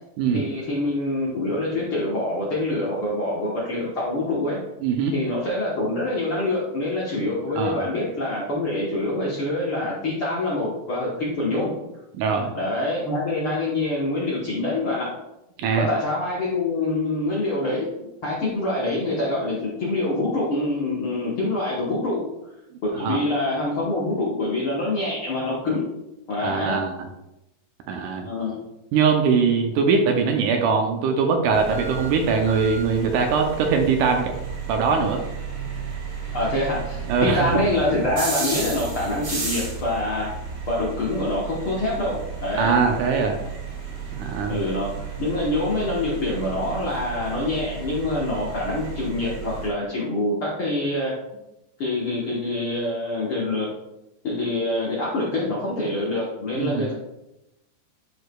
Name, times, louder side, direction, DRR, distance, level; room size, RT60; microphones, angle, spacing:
voice 1, 0.3-4.6 5.1-11.7 12.5-15.1 15.8-17.9 18.2-22.2 22.8-25.9 26.3-26.8 28.2-28.7 36.3-40.3 40.7-42.7 44.5-51.2 51.8-53.7 54.2-56.9, left 2 dB, 60° left, -6 dB, 1.4 m, -25 dB
voice 2, 4.8-5.1 7.6-7.8 12.2-12.5 15.6-15.9 23.0-23.2 26.4-27.1 27.9-28.3 28.9-34.3 34.7-35.2 37.1-37.6 42.6-43.4 44.2-44.6 56.6-56.9, right 5 dB, 75° right, 3 dB, 2.0 m, -22 dB
sound 1, 31.5-49.7, right 5 dB, 35° right, 2.2 m, -33 dB
11.0 x 4.8 x 2.3 m, 0.90 s
omnidirectional pair, 4.0 m